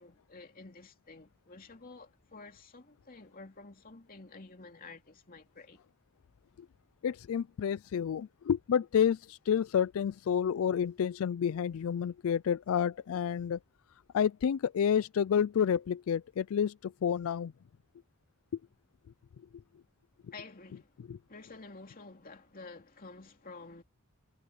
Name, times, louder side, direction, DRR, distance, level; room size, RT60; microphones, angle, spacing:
voice 1, 0.0-5.8 20.3-21.0 21.3-23.8, left 3 dB, 40° left, 2.7 m, -50 dB
voice 2, 7.0-13.6 14.1-17.5 21.1-21.2, left 8 dB, 70° left, 0.3 m, -29 dB
head